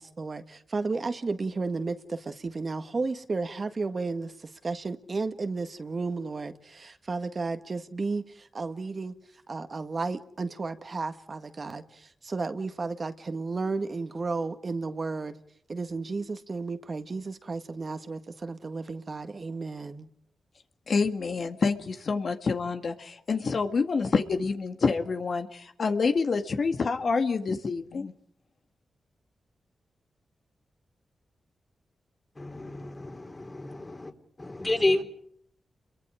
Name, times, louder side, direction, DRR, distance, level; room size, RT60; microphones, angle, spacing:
voice 1, 0.0-9.1 9.5-15.3 15.7-20.1, right 3 dB, 50° right, 1.7 m, -33 dB
voice 2, 20.9-28.1, left 4 dB, 65° left, 1.9 m, -27 dB
voice 3, 32.4-34.1 34.4-35.0, left 2 dB, 30° left, 3.6 m, -29 dB
30.0 x 22.5 x 5.0 m
cardioid pair, 50°, 0 cm